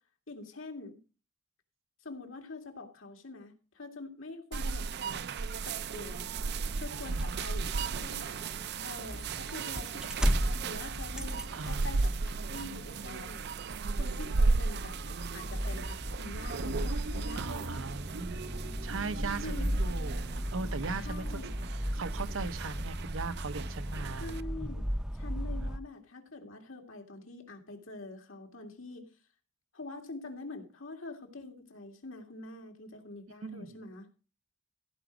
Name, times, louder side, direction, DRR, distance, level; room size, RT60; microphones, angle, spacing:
voice 1, 0.3-1.0 2.0-5.2 5.6-6.3 6.7-8.4 8.8-13.5 14.0-17.8 19.4-19.7 21.0-21.5 24.2-24.9 25.1-29.1 29.7-34.1, left 2 dB, 85° left, 2.2 m, -45 dB
sound 1, 4.5-24.4, right 4 dB, 55° right, 0.5 m, -35 dB
sound 2, 6.5-25.8, equal, 5° right, 0.5 m, -37 dB
voice 2, 6.9-7.4 11.5-12.0 12.5-13.1 17.4-18.4 18.8-21.4 21.9-24.3 33.4-33.8, right 4 dB, 80° right, 0.8 m, -39 dB
15.0 x 5.1 x 6.0 m
head